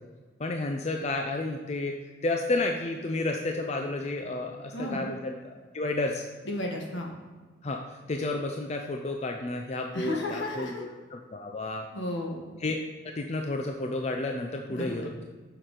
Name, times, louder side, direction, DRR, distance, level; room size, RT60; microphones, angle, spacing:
voice 1, 0.4-1.9 2.2-6.2 7.6-11.8 12.6-12.8 13.1-15.1, left 2 dB, 35° left, 2 dB, 0.5 m, -31 dB
voice 2, 4.7-5.0 6.4-7.1 9.9-10.8 11.9-12.5 14.7-15.1, left 1 dB, 70° left, 1 dB, 1.4 m, -33 dB
6.9 x 5.8 x 4.8 m, 1.4 s
head